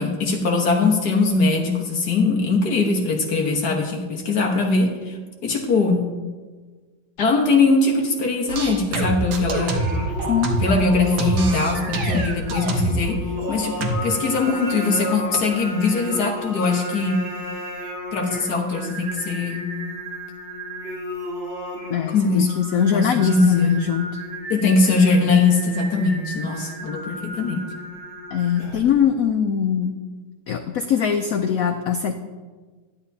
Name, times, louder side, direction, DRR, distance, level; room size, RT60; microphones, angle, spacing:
voice 1, 0.0-6.1 7.2-9.9 10.6-17.2 18.1-19.6 22.1-22.5 22.9-23.8 24.5-27.6, left 3 dB, 55° left, 0 dB, 1.8 m, -21 dB
sound 1, 8.5-10.9 11.2-13.1 13.8-13.9, right 2 dB, 90° right, 2.0 m, -25 dB
Singing, 9.4-29.0, equal, 70° right, 3.6 m, -34 dB
voice 2, 21.9-24.2 28.3-29.9 30.5-32.1, left 8 dB, 80° left, 7 dB, 0.7 m, -22 dB
13.5 x 11.5 x 2.8 m, 1.4 s
omnidirectional pair, 2.1 m